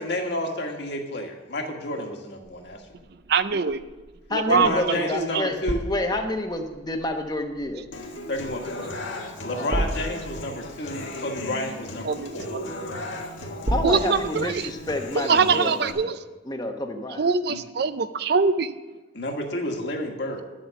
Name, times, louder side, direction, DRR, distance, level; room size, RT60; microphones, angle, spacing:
voice 1, 0.0-2.8 4.5-5.9 8.3-8.9 9.4-12.5 17.5-17.6 19.1-20.4, left 1 dB, 60° left, 2 dB, 1.7 m, -30 dB
sound 1, 2.4-15.1, right 1 dB, 35° right, 0.9 m, -35 dB
voice 2, 3.3-3.8 4.3-5.5 12.0-12.6 13.8-14.7 15.1-16.1 17.2-18.7, right 5 dB, 55° right, 12 dB, 0.5 m, -23 dB
voice 3, 4.3-5.6 5.9-7.8 9.5-9.7 13.7-16.2 16.5-17.3, left 1 dB, 20° left, 4 dB, 1.0 m, -29 dB
Human voice / Acoustic guitar, 7.9-15.9, left 1 dB, 90° left, 1.8 m, -36 dB
11.0 x 7.6 x 7.1 m, 1.2 s
head